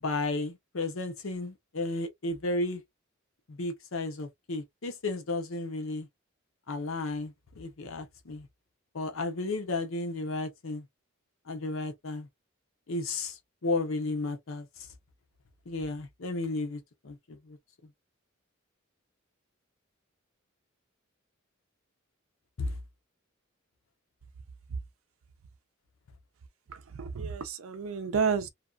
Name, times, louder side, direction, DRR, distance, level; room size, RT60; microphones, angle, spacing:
voice 1, 0.0-2.8 3.5-6.1 6.7-8.5 8.9-10.8 11.5-12.3 12.9-14.9 15.7-17.6 22.6-22.8, left 2 dB, 70° left, 0.7 m, -33 dB
voice 2, 26.7-28.5, right 6 dB, 80° right, 0.5 m, -31 dB
2.7 x 2.3 x 2.3 m
head